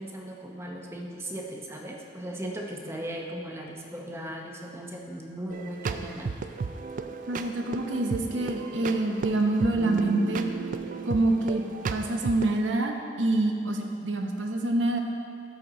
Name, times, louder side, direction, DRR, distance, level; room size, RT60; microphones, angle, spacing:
voice 1, 0.0-6.3, right 1 dB, 15° right, 0 dB, 0.7 m, -37 dB
sound 1, 5.5-12.5, right 4 dB, 45° right, 0.3 m, -34 dB
voice 2, 7.3-10.4 11.1-11.6 11.9-15.0, right 2 dB, 90° right, 3 dB, 0.8 m, -26 dB
12.0 x 4.4 x 3.9 m, 2.7 s
head